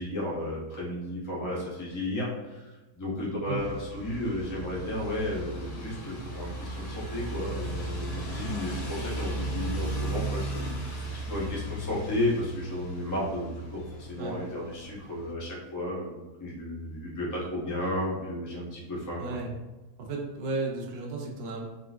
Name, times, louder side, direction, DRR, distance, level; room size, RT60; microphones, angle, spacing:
voice 1, 0.0-19.4, left 1 dB, 25° left, -5 dB, 0.4 m, -33 dB
sound 1, 3.6-15.3, right 1 dB, 75° left, 1.2 m, -36 dB
voice 2, 19.2-19.5 20.0-21.6, right 3 dB, 70° right, 0 dB, 0.6 m, -34 dB
3.8 x 2.4 x 2.3 m, 1.1 s
omnidirectional pair, 1.7 m